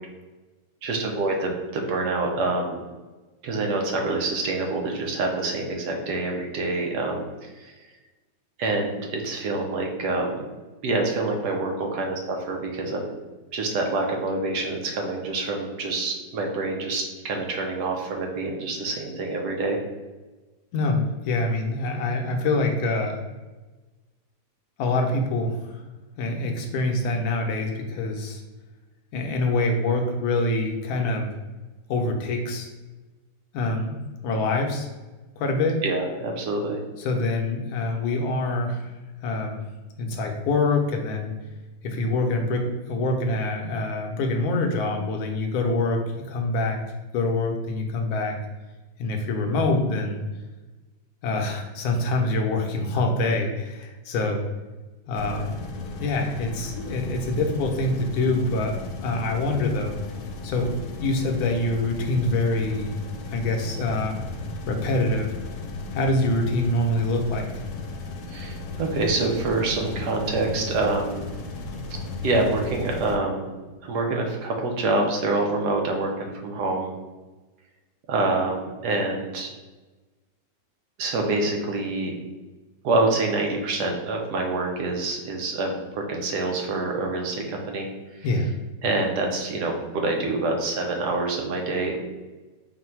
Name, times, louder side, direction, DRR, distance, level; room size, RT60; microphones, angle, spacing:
voice 1, 0.8-2.8 3.4-7.7 8.6-10.4 10.8-13.1 13.5-19.8 35.8-36.8 68.3-71.2 72.2-73.5 73.8-76.9 78.1-79.5 81.0-82.1 82.8-88.3 88.8-92.0, right 2 dB, 70° right, 1 dB, 1.2 m, -26 dB
voice 2, 20.7-23.2 24.8-25.6 26.2-28.4 29.1-31.4 31.9-32.7 33.5-34.0 34.2-34.9 35.4-35.8 37.0-38.9 39.2-39.6 40.0-41.3 41.8-46.8 47.1-48.4 49.0-50.2 51.2-54.4 55.1-55.6 56.0-60.0 60.4-60.7 61.0-63.0 63.3-64.3 64.7-65.3 65.9-67.5 88.2-88.5, left 2 dB, 70° left, 2 dB, 1.1 m, -25 dB
sound 1, 55.1-73.2, left 3 dB, 90° left, 1.3 m, -35 dB
3.9 x 2.2 x 4.4 m, 1.2 s
omnidirectional pair, 1.9 m